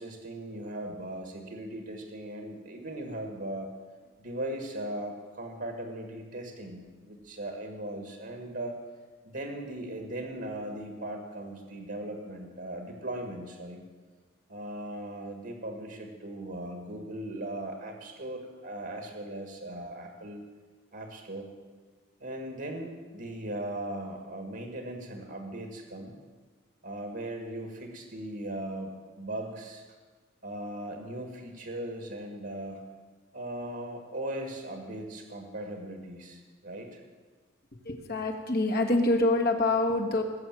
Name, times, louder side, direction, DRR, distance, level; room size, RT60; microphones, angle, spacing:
voice 1, 0.0-3.7 4.2-8.8 9.2-13.8 14.5-20.4 20.9-21.5 22.2-26.2 26.8-28.9 29.2-29.8 30.4-32.8 33.3-37.0, right 1 dB, 55° right, 3 dB, 1.8 m, -38 dB
voice 2, 37.8-40.2, left 2 dB, 50° left, 3 dB, 1.4 m, -26 dB
19.0 x 8.0 x 7.6 m, 1.4 s
head